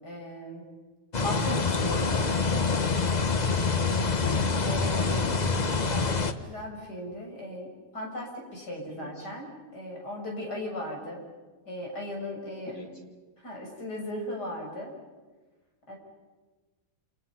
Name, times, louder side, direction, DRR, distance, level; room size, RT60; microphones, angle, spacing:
voice 1, 0.0-0.6 1.2-2.3 4.6-5.1 5.9-9.5 9.7-11.2 11.7-12.7 13.4-14.9 15.9-16.0, left 1 dB, 85° left, -1 dB, 7.6 m, -37 dB
sound 1, 1.1-6.3, left 4 dB, 30° left, 1.0 m, -26 dB
voice 2, 4.0-4.3 4.8-5.4 8.8-9.3 12.7-12.9, equal, 55° left, 0 dB, 3.6 m, -42 dB
29.0 x 28.0 x 5.9 m, 1.3 s
omnidirectional pair, 1.7 m